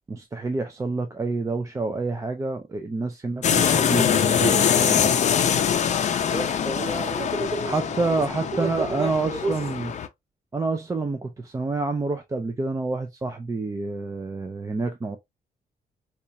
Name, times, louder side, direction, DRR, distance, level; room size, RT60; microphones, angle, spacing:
voice 1, 0.1-5.1 7.7-9.9 10.5-15.2, right 3 dB, 20° right, 0.4 m, -28 dB
sound 1, 3.4-10.1, left 8 dB, 50° left, 0.5 m, -23 dB
voice 2, 6.0-7.7 8.2-9.5, right 2 dB, 35° right, 2.0 m, -31 dB
4.2 x 2.4 x 2.6 m
cardioid pair, 140°, 16 cm